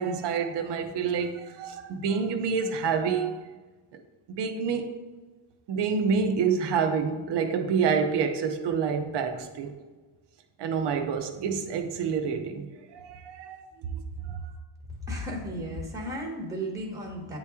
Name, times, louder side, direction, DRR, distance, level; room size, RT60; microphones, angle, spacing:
voice 1, 0.0-3.4 3.9-4.0 4.3-4.9 5.7-9.7 10.6-13.6 13.9-14.4, right 6 dB, 55° right, 7 dB, 0.7 m, -28 dB
voice 2, 14.9-17.4, equal, 5° right, -1 dB, 0.9 m, -34 dB
8.8 x 3.0 x 3.5 m, 1.3 s
cardioid pair, 130°, 49 cm